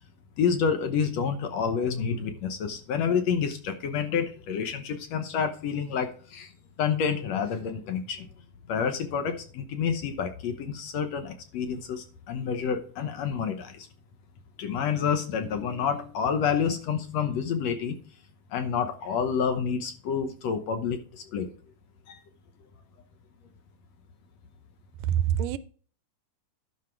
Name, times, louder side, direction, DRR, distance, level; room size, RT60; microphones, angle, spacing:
voice 1, 0.4-6.5 6.8-8.3 8.7-13.9 14.6-18.0 18.5-21.5 22.1-22.2, left 6 dB, 65° left, 1.9 m, -28 dB
voice 2, 25.0-25.6, right 10 dB, 85° right, 2.3 m, -25 dB
11.5 x 5.4 x 4.5 m
omnidirectional pair, 3.7 m